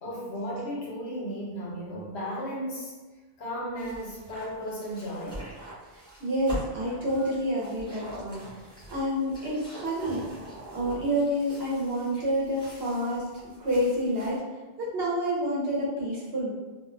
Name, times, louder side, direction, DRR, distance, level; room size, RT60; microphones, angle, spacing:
voice 1, 0.0-2.9 3.4-5.5, equal, 75° left, -4 dB, 1.0 m, -35 dB
sound 1, 3.8-14.4, right 1 dB, 5° left, 0.4 m, -43 dB
voice 2, 5.9-10.3 10.7-13.3 13.6-14.4 14.8-16.5, equal, 65° right, -5 dB, 1.0 m, -28 dB
2.4 x 2.1 x 2.4 m, 1.3 s
omnidirectional pair, 1.1 m